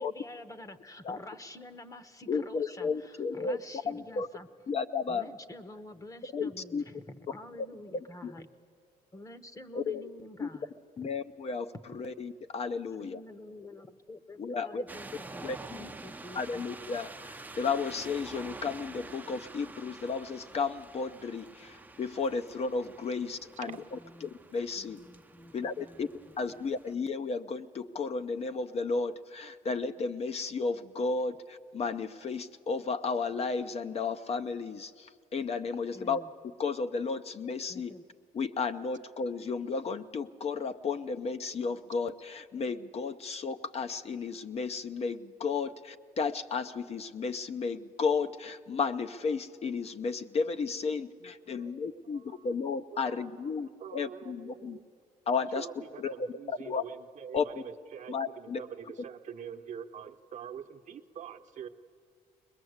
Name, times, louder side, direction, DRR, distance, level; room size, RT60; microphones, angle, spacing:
voice 1, 0.0-4.5 5.1-8.5 9.1-10.7 13.0-16.6 24.0-24.3 24.7-26.1 26.5-26.6 35.9-36.3 37.7-38.0, left 1 dB, 20° left, 12 dB, 0.9 m, -48 dB
voice 2, 2.3-3.6 3.9-4.3 4.7-5.3 6.3-6.8 8.2-8.3 9.7-10.1 10.4-10.5 11.0-13.2 14.4-14.8 15.4-15.9 16.3-25.0 25.5-26.1 26.4-36.2 36.6-37.9 38.3-54.8 55.3-55.7 56.0-56.8 57.3-57.5 58.1-58.6, left 4 dB, 40° left, 9 dB, 0.6 m, -33 dB
sound 1, 14.9-26.9, right 3 dB, 10° right, 0.6 m, -48 dB
voice 3, 51.5-52.5 52.9-54.8 55.5-61.7, right 8 dB, 50° right, 7 dB, 0.9 m, -45 dB
21.0 x 21.0 x 8.0 m, 2.1 s
cardioid pair, 125°, 16 cm